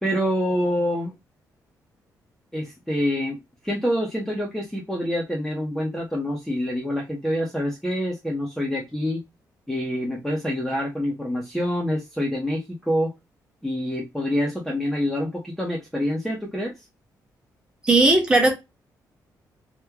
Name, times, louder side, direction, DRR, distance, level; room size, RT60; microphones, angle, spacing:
voice 1, 0.0-1.1 2.5-3.4 3.6-9.2 9.7-13.1 13.6-16.7, equal, 5° left, 0.7 m, -26 dB
voice 2, 17.8-18.5, right 2 dB, 15° right, 1.0 m, -17 dB
3.0 x 2.1 x 3.5 m
cardioid pair, 140°, 7 cm